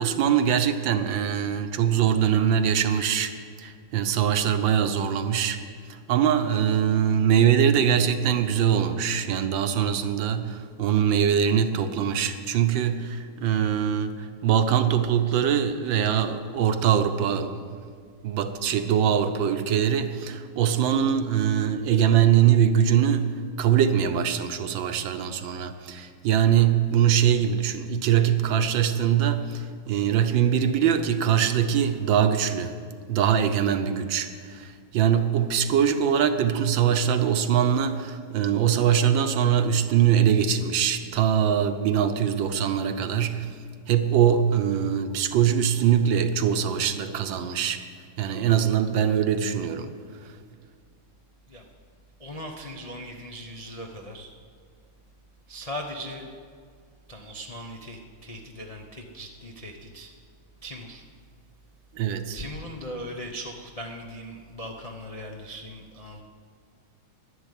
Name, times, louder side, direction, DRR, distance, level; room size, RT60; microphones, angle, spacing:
voice 1, 0.0-3.3 3.6-5.6 5.9-17.6 18.2-23.3 23.6-32.7 33.1-43.5 43.9-47.8 48.2-49.9 61.9-62.4, right 9 dB, 70° right, 8 dB, 1.4 m, -22 dB
voice 2, 52.2-54.3 55.5-56.3 57.1-60.1 60.6-61.0 62.3-66.2, equal, 50° left, 0 dB, 0.4 m, -39 dB
11.0 x 11.0 x 8.3 m, 2.1 s
omnidirectional pair, 2.3 m